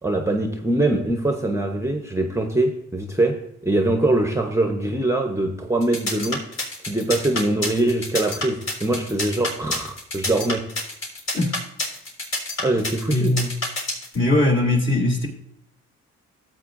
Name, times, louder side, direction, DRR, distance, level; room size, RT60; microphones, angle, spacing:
voice 1, 0.0-6.4 6.8-10.7 12.6-13.4, right 2 dB, 10° right, 4 dB, 0.8 m, -23 dB
sound 1, 5.8-14.1, left 2 dB, 60° left, 3.7 m, -28 dB
voice 2, 13.1-13.6 14.1-15.3, left 2 dB, 40° left, -1 dB, 2.3 m, -20 dB
13.5 x 7.8 x 2.5 m, 0.74 s
cardioid pair, 90°, 30 cm